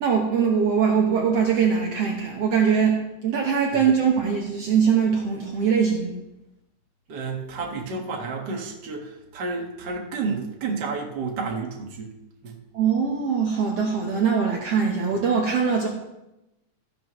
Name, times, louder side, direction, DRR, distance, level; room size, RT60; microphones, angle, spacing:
voice 1, 0.0-6.1 12.7-15.9, right 6 dB, 60° right, 0 dB, 1.9 m, -22 dB
voice 2, 7.1-12.1 12.4-12.6, right 4 dB, 40° right, 0 dB, 1.8 m, -31 dB
13.5 x 12.0 x 3.1 m, 0.93 s
omnidirectional pair, 3.5 m